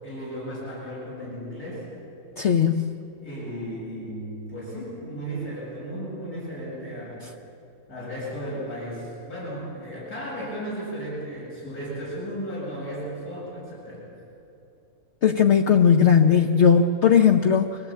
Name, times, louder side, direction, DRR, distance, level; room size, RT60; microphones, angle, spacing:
voice 1, 0.0-1.8 3.2-7.2 7.9-14.0, equal, 80° left, -7 dB, 8.4 m, -35 dB
voice 2, 2.4-2.9 15.2-17.8, left 7 dB, 55° left, 4 dB, 1.0 m, -18 dB
24.5 x 17.0 x 8.5 m, 2.8 s
omnidirectional pair, 1.6 m